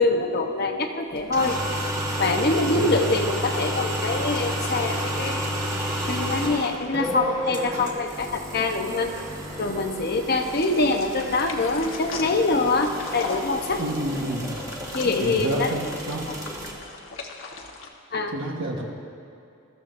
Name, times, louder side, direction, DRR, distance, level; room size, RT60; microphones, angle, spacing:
voice 1, 0.0-1.6 2.2-5.5 6.1-9.1 9.6-13.8 14.9-15.7 16.3-16.4 18.1-18.3, left 3 dB, 50° left, 4 dB, 0.9 m, -24 dB
sound 1, 1.2-16.7, equal, 15° right, 1.4 m, -31 dB
sound 2, 10.4-17.9, left 3 dB, 75° left, 1.3 m, -39 dB
voice 2, 13.8-14.6 15.2-15.8 16.1-16.3 18.3-18.8, right 1 dB, 70° right, -1 dB, 1.4 m, -29 dB
20.5 x 14.0 x 2.6 m, 2.5 s
head